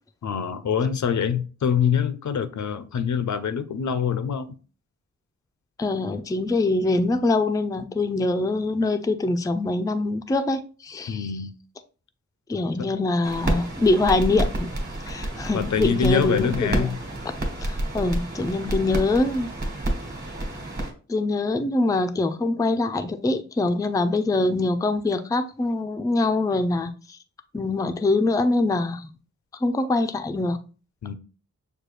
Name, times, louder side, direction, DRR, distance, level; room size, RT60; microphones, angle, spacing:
voice 1, 0.2-4.6 11.1-11.5 12.8-12.9 15.5-17.0 31.0-31.1, left 7 dB, 70° left, 0.5 m, -25 dB
voice 2, 5.8-11.3 12.5-14.7 15.1-16.9 17.6-19.5 21.1-27.2 27.5-29.1 29.6-30.6, left 2 dB, 10° left, 0.3 m, -24 dB
sound 1, 13.2-20.9, right 1 dB, 30° right, 1.3 m, -29 dB
6.6 x 2.3 x 3.1 m
wide cardioid pair, 110°, 30 cm